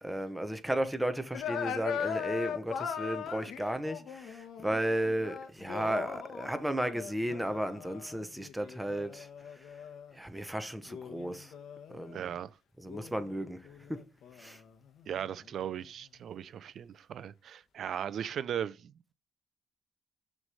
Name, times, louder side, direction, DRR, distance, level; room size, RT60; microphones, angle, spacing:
voice 1, 0.0-9.3 10.1-11.5 11.9-12.3 12.8-13.6 13.9-14.0 14.4-14.6, right 1 dB, 5° right, 0.9 m, -34 dB
sound 1, 1.3-10.1 10.9-12.4 12.8-15.8, left 7 dB, 75° left, 0.9 m, -40 dB
voice 2, 12.1-12.5 15.1-18.9, right 9 dB, 65° right, 0.4 m, -37 dB
6.1 x 3.2 x 5.4 m
cardioid pair, 90°, 0 cm